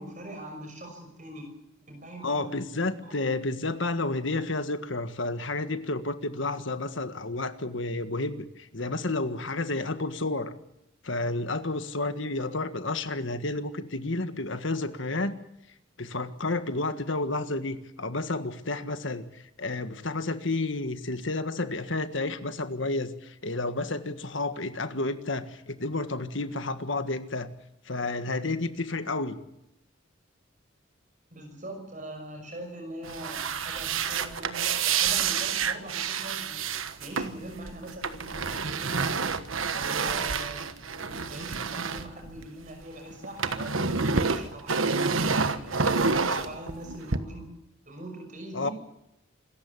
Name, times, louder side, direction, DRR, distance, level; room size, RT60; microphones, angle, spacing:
voice 1, 0.0-1.6 1.9-3.1 31.3-36.7 37.0-39.4 39.7-43.8 44.2-47.5 47.9-48.7, right 1 dB, 40° right, 4 dB, 5.9 m, -42 dB
voice 2, 2.2-10.5 11.0-15.3 16.0-27.5 27.8-29.4 48.5-48.7, left 2 dB, 70° left, 10 dB, 1.6 m, -31 dB
sound 1, 33.0-42.8 43.1-47.2, right 5 dB, 85° right, 1.3 m, -28 dB
26.5 x 14.5 x 8.4 m, 0.86 s
head